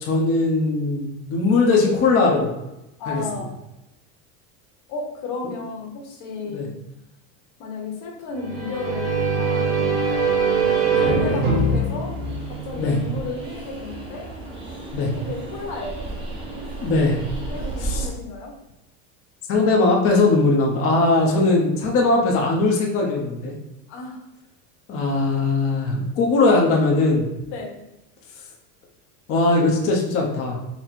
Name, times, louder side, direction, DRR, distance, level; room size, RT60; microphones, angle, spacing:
voice 1, 0.0-2.5 3.1-3.2 6.5-6.7 10.9-11.4 12.8-13.0 14.9-15.1 16.8-17.2 17.8-18.1 19.5-23.5 24.9-27.3 29.3-30.6, left 3 dB, 35° left, -1 dB, 0.8 m, -20 dB
voice 2, 3.0-3.5 4.9-6.7 7.6-10.5 10.9-12.1 12.5-14.3 15.2-16.1 17.5-18.5 23.9-24.2 27.5-27.7, left 3 dB, 50° left, 1 dB, 1.1 m, -33 dB
sound 1, 8.4-13.1, right 4 dB, 55° right, 1.5 m, -22 dB
Train, 10.0-18.1, right 2 dB, 10° right, 1.1 m, -34 dB
4.2 x 2.1 x 4.3 m, 0.92 s
supercardioid pair, 150°, 42 cm